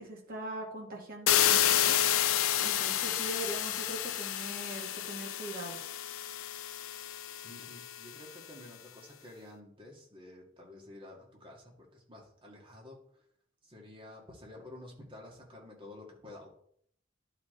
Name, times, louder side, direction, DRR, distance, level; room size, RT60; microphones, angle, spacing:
voice 1, 0.0-2.0 2.6-5.8, right 2 dB, 45° right, -1 dB, 2.1 m, -41 dB
sound 1, 1.3-8.1, left 11 dB, 85° left, 0.6 m, -30 dB
voice 2, 7.4-13.2 13.6-16.5, left 1 dB, 25° right, -1 dB, 2.1 m, -51 dB
11.0 x 5.0 x 3.9 m, 0.66 s
head